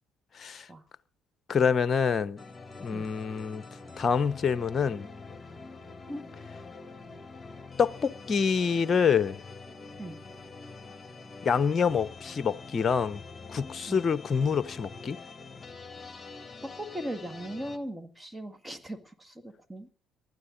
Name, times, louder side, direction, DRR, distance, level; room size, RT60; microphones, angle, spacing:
voice 1, 0.3-0.7 1.5-2.4 2.8-3.6 4.0-5.1 7.8-9.4 11.4-13.2 13.5-15.2, left 6 dB, 45° left, 0.8 m, -26 dB
sound 1, 2.4-17.8, left 3 dB, 25° left, 2.5 m, -45 dB
voice 2, 16.6-19.9, equal, 10° right, 2.0 m, -39 dB
19.0 x 12.0 x 4.0 m
hypercardioid pair, 55°, 0 cm